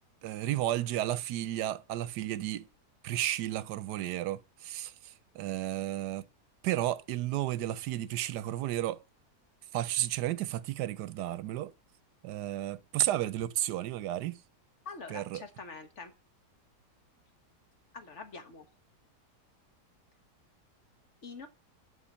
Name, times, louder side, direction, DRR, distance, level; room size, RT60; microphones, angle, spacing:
voice 1, 0.2-2.7 3.0-6.3 6.6-9.0 9.7-11.7 12.2-14.4 15.1-15.4, right 13 dB, 90° right, 1.3 m, -33 dB
voice 2, 14.8-16.1 17.9-18.7 21.2-21.5, left 4 dB, 50° left, 1.5 m, -45 dB
11.5 x 4.3 x 7.2 m
omnidirectional pair, 1.7 m